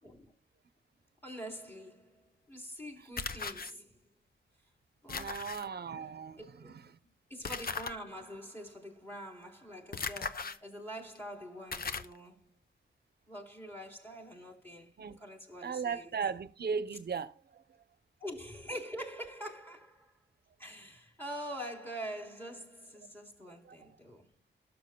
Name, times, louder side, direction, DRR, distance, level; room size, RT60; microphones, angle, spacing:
voice 1, 0.0-0.3 1.2-4.0 5.0-5.6 6.3-6.9 7.3-12.6 13.3-16.2 18.2-20.1 20.6-24.3, equal, 10° left, 3.8 m, -45 dB
sound 1, 3.2-3.7 5.1-5.6 7.4-7.9 9.9-10.6 11.1-11.2 11.7-12.2, left 5 dB, 50° left, 0.9 m, -37 dB
voice 2, 5.1-6.4 15.0-15.2 15.6-17.3, right 6 dB, 60° right, 0.8 m, -36 dB
12.5 x 7.5 x 2.3 m
cardioid pair, 65°, 19 cm